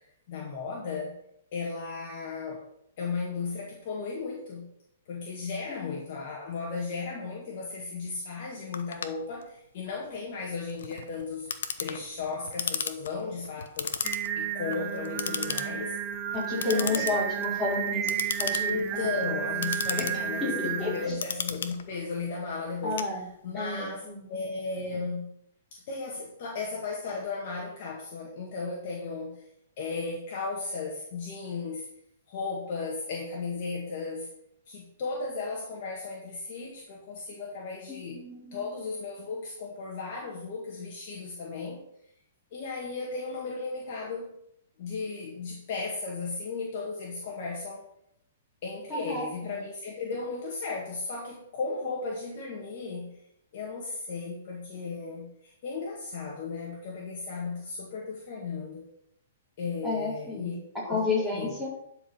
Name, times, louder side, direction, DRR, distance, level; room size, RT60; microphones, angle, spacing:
voice 1, 0.3-1.2 1.5-2.6 3.0-4.7 5.1-11.5 11.8-13.9 14.4-15.9 16.5-17.3 18.7-23.0 23.4-25.3 25.7-29.4 29.8-31.9 32.3-34.3 34.7-38.2 38.5-41.8 42.5-44.4 44.8-47.8 48.6-53.2 53.5-58.9 59.6-60.6 60.9-61.5, left 4 dB, 45° left, -2 dB, 2.0 m, -35 dB
Clock, 8.7-23.7, left 6 dB, 80° left, 1.0 m, -36 dB
Singing, 14.0-21.1, right 9 dB, 25° right, 0.7 m, -32 dB
voice 2, 16.3-19.1 20.4-21.0 22.8-23.2 23.5-24.2 37.9-38.7 48.9-49.5 59.8-60.6 60.8-61.7, left 3 dB, 5° left, -8 dB, 4.5 m, -31 dB
11.0 x 5.0 x 5.7 m, 0.76 s
hypercardioid pair, 155°, 0 cm